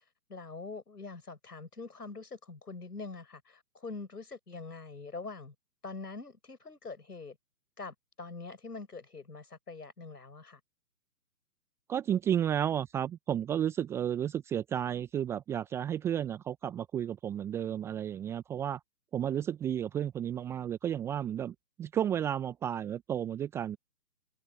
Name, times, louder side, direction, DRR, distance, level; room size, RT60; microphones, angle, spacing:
voice 1, 0.3-5.5 5.8-7.4 7.8-10.6, left 3 dB, 70° left, 7.4 m, -44 dB
voice 2, 11.9-18.8 19.1-23.8, right 9 dB, 5° right, 1.1 m, -32 dB
figure-of-eight pair, 140°, 49 cm